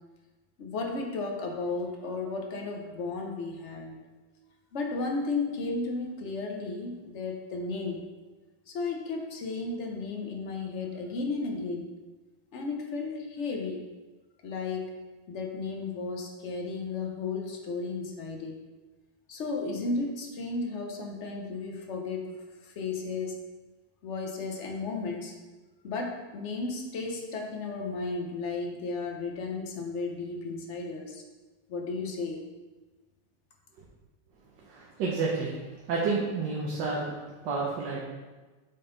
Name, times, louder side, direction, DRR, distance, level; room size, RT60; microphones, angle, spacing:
voice 1, 0.6-4.0 4.7-8.0 8.7-11.9 12.5-13.8 14.4-14.9 15.3-18.6 19.3-22.3 22.6-23.4 24.0-25.3 25.8-31.2 31.7-32.4, left 3 dB, 55° left, 2 dB, 0.8 m, -34 dB
voice 2, 34.7-35.6 35.9-38.0, right 4 dB, 70° right, -3 dB, 1.5 m, -30 dB
7.7 x 3.8 x 3.9 m, 1.3 s
omnidirectional pair, 2.0 m